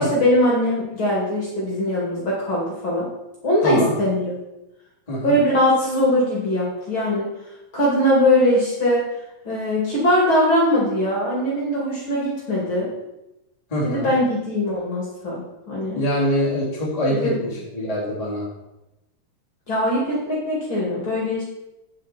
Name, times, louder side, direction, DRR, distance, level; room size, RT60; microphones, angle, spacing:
voice 1, 0.0-3.1 3.4-4.3 5.2-7.3 7.7-9.0 9.4-12.9 13.8-16.0 17.1-17.3 19.7-21.4, left 1 dB, 35° left, -5 dB, 3.0 m, -21 dB
voice 2, 3.6-3.9 5.1-5.4 13.7-14.1 15.9-18.5, equal, 10° left, -6 dB, 2.6 m, -24 dB
9.4 x 8.6 x 4.3 m, 0.94 s
omnidirectional pair, 4.2 m